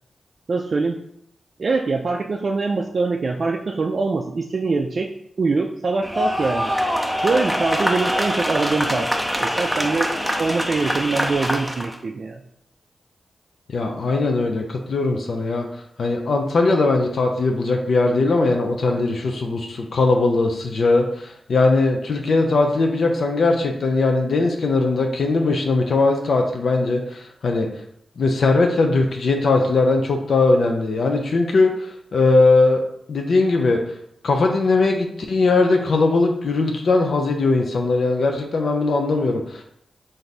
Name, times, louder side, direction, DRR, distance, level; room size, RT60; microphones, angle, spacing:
voice 1, 0.5-1.0 1.6-5.1 5.4-6.7 7.2-9.1 9.4-10.1 10.4-12.4, right 3 dB, 60° right, 2 dB, 0.3 m, -23 dB
sound 1, 6.0-11.9, equal, 5° left, 0.6 m, -24 dB
voice 2, 13.7-15.7 16.0-27.7 28.2-32.8 33.1-33.8 34.2-39.6, left 3 dB, 75° left, 2 dB, 0.4 m, -19 dB
3.3 x 2.6 x 4.0 m, 0.72 s
cardioid pair, 50°, 0 cm